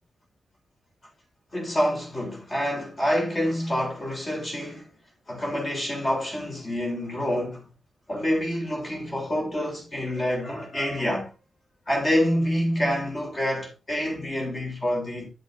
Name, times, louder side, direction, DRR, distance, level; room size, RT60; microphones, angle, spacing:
voice 1, 1.5-4.9 5.3-7.7 8.1-11.3 11.9-15.3, equal, 25° left, 3.8 m, -27 dB
10.0 x 8.1 x 2.7 m
wide cardioid pair, 180°, 0 cm